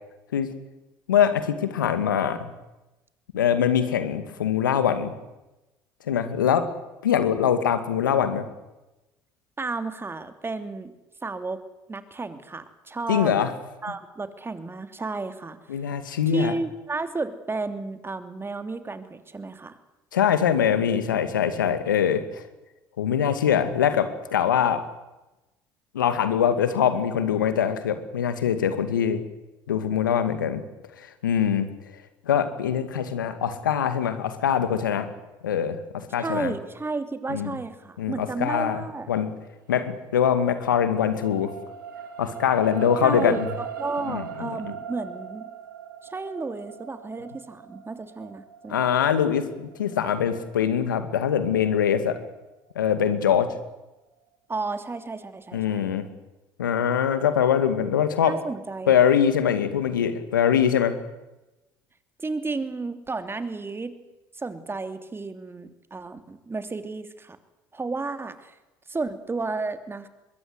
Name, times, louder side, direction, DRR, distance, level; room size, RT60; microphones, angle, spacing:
voice 1, 1.1-2.5 3.3-5.1 6.1-6.7 7.0-8.5 13.1-13.5 15.7-16.5 20.1-22.4 23.0-24.8 25.9-29.2 29.7-30.6 31.2-31.7 32.3-35.1 35.4-36.5 37.3-37.6 38.0-38.8 39.1-39.3 39.7-41.5 42.2-43.5 44.1-44.7 48.7-52.2 52.8-53.5 55.5-56.0 56.6-58.3 58.9-60.9, left 8 dB, 90° left, 10 dB, 2.3 m, -23 dB
voice 2, 9.6-10.9 11.2-11.6 11.9-13.3 13.8-15.6 16.3-19.8 36.2-39.1 43.0-45.5 46.0-48.8 54.5-55.9 58.3-58.9 62.2-63.9 64.3-67.4 67.7-68.5 68.9-70.1, right 3 dB, 25° right, 9 dB, 3.0 m, -32 dB
sound 1, 39.7-52.2 52.7-52.8, right 7 dB, 90° right, 2.4 m, -40 dB
24.5 x 22.0 x 8.1 m, 1.0 s
hypercardioid pair, 60°, 10 cm